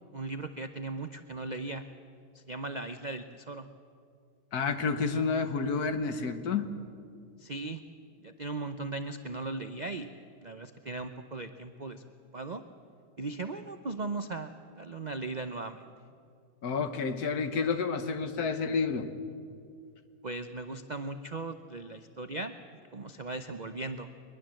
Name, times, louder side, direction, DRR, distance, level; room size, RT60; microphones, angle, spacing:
voice 1, 0.1-1.8 2.3-3.7 7.4-7.8 8.2-10.1 10.4-12.0 12.3-12.6 13.2-15.8 20.2-22.6 22.9-24.1, right 3 dB, 50° right, 8 dB, 0.5 m, -38 dB
voice 2, 4.5-6.7 16.6-19.1, left 5 dB, 60° left, 9 dB, 1.6 m, -30 dB
22.5 x 21.5 x 7.7 m, 2.3 s
omnidirectional pair, 1.9 m